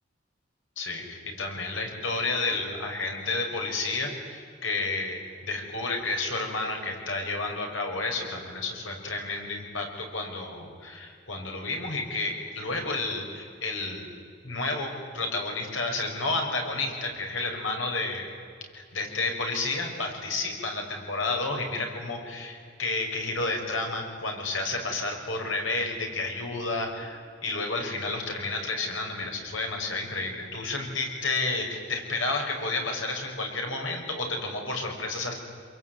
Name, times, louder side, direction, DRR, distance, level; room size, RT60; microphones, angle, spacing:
voice 1, 0.8-14.1 14.4-18.2 18.7-35.3, left 3 dB, 85° left, 2 dB, 6.0 m, -31 dB
27.0 x 23.0 x 9.5 m, 2.3 s
head